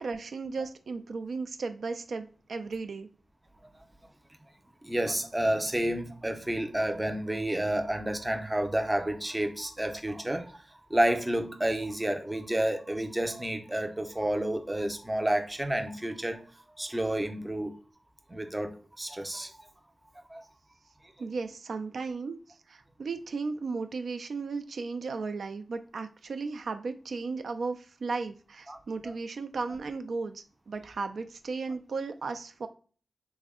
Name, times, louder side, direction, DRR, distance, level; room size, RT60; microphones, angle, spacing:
voice 1, 0.0-3.1 21.2-22.4 22.7-32.7, right 4 dB, 75° right, 0.3 m, -35 dB
voice 2, 4.8-10.6 10.9-16.5 16.8-17.8 18.3-19.6 20.3-20.4 28.7-28.8 29.0-29.1, right 1 dB, 15° right, 0.5 m, -30 dB
3.4 x 2.0 x 3.6 m
wide cardioid pair, 105°, 0 cm